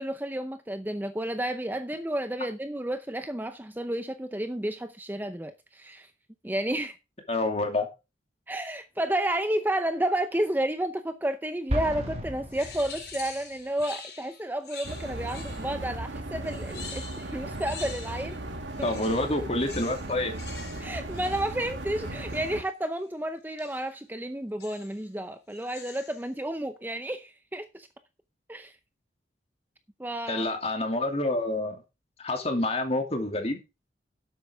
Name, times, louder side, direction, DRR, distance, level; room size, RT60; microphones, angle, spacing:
voice 1, 0.0-6.1 6.4-7.0 8.5-18.4 20.8-27.9 28.5-28.7 30.0-30.5, right 1 dB, 10° right, 0.6 m, -31 dB
voice 2, 7.3-7.9 18.8-20.3 30.3-31.8 32.2-33.6, left 2 dB, 35° left, 2.6 m, -28 dB
Explosion, 11.7-13.5, equal, 35° right, 2.3 m, -33 dB
sound 1, 12.5-15.9 16.4-18.4 18.7-22.5 23.6-23.9 24.6-25.1 25.5-26.3, left 6 dB, 60° left, 4.3 m, -45 dB
sound 2, 14.8-22.6, right 1 dB, 85° right, 2.2 m, -37 dB
12.0 x 8.2 x 3.6 m
head